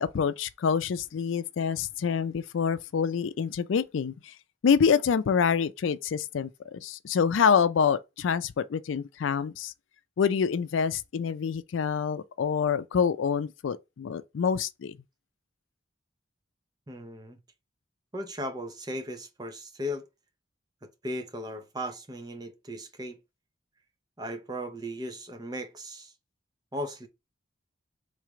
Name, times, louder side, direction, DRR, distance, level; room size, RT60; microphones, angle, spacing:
voice 1, 0.0-4.3 4.6-9.7 10.2-15.0, left 6 dB, 90° left, 0.4 m, -26 dB
voice 2, 16.9-17.4 18.1-20.1 20.8-23.2 24.2-26.1 26.7-27.1, equal, 20° right, 0.7 m, -37 dB
3.3 x 3.2 x 4.8 m
head